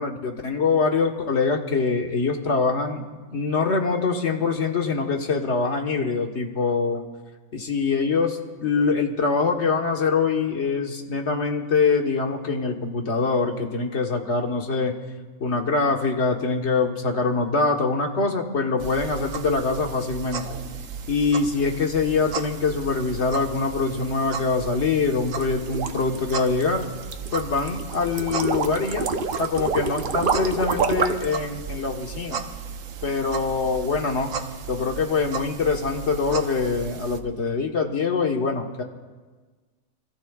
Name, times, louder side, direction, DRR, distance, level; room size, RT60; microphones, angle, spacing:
voice 1, 0.0-3.0 3.3-7.0 7.5-15.0 15.4-20.5 21.1-26.9 27.3-29.1 29.4-32.4 33.0-34.3 34.7-38.8, left 4 dB, 55° left, 3 dB, 1.5 m, -24 dB
sound 1, 18.8-37.2, right 6 dB, 70° right, 1.2 m, -35 dB
sound 2, 25.3-31.3, right 5 dB, 50° right, 0.8 m, -27 dB
28.0 x 14.5 x 2.4 m, 1.4 s
omnidirectional pair, 1.5 m